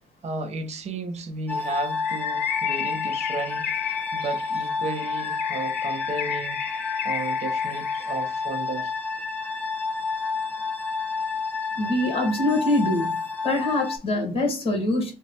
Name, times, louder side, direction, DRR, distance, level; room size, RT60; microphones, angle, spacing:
voice 1, 0.2-6.6 7.0-8.9, right 3 dB, 40° right, 0.7 m, -34 dB
sound 1, 1.5-14.0, left 4 dB, 10° left, 0.6 m, -30 dB
Bird, 2.0-8.3, left 10 dB, 65° left, 0.4 m, -33 dB
voice 2, 11.8-13.2 13.4-15.1, left 1 dB, 35° left, 1.4 m, -24 dB
3.0 x 2.2 x 4.2 m
cardioid pair, 110°, 17 cm